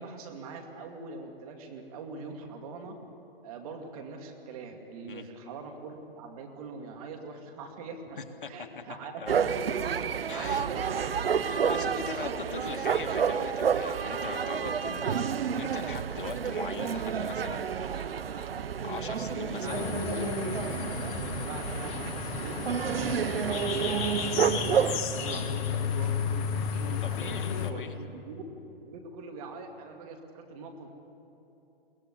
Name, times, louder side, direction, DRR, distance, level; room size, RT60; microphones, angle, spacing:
voice 1, 0.0-3.0 3.4-8.2 8.5-9.4 10.3-12.4 19.6-20.2 20.6-28.4 28.8-30.9, right 4 dB, 35° right, 3 dB, 2.5 m, -42 dB
voice 2, 8.4-8.8 9.2-9.4 10.3-10.7 11.4-18.2 18.8-19.9 25.3-25.4 27.0-28.0, left 5 dB, 55° left, 6 dB, 1.8 m, -41 dB
sound 1, 9.3-25.0, right 7 dB, 70° right, 0.9 m, -30 dB
sound 2, 19.7-27.7, left 6 dB, 20° left, 1.1 m, -33 dB
22.5 x 17.5 x 9.9 m, 2.9 s
figure-of-eight pair, 135°, 30 cm